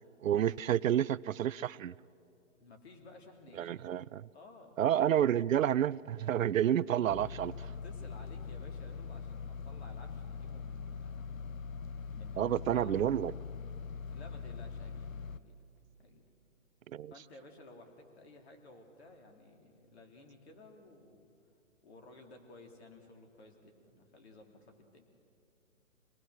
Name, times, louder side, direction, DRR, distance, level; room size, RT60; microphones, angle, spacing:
voice 1, 0.2-1.9 3.6-4.2 4.8-7.5 12.4-13.3 16.9-17.1, right 10 dB, 70° right, 0.5 m, -29 dB
voice 2, 2.6-3.8 4.3-4.8 7.6-11.3 12.1-13.4 14.1-15.6 16.0-16.2 17.1-21.3 21.8-25.0, left 2 dB, 50° left, 3.1 m, -55 dB
sound 1, 7.1-15.4, left 5 dB, 70° left, 0.9 m, -42 dB
25.5 x 19.0 x 6.4 m
hypercardioid pair, 160°, 41 cm